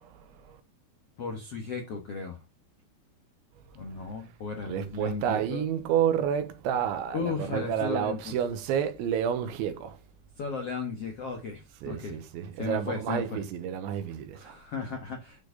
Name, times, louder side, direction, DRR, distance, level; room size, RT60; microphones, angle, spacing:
voice 1, 1.2-2.4 3.7-5.6 7.1-8.3 10.4-12.2 12.6-13.4 14.3-15.4, left 5 dB, 70° left, 1.4 m, -35 dB
voice 2, 4.7-10.0 11.8-14.6, right 9 dB, 90° right, 3.5 m, -30 dB
11.5 x 5.0 x 4.0 m
omnidirectional pair, 5.1 m